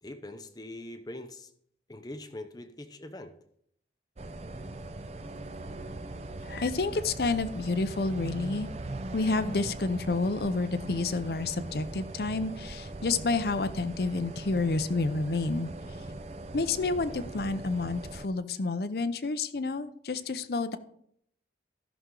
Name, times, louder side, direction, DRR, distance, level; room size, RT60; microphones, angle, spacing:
voice 1, 0.0-1.5 1.9-3.3, left 1 dB, 20° left, 8 dB, 0.7 m, -42 dB
sound 1, 4.2-18.3, right 2 dB, 35° right, 0.6 m, -40 dB
voice 2, 6.5-8.7 9.1-15.7 16.5-20.8, left 3 dB, 60° left, 12 dB, 0.6 m, -29 dB
14.0 x 6.2 x 3.8 m, 0.68 s
head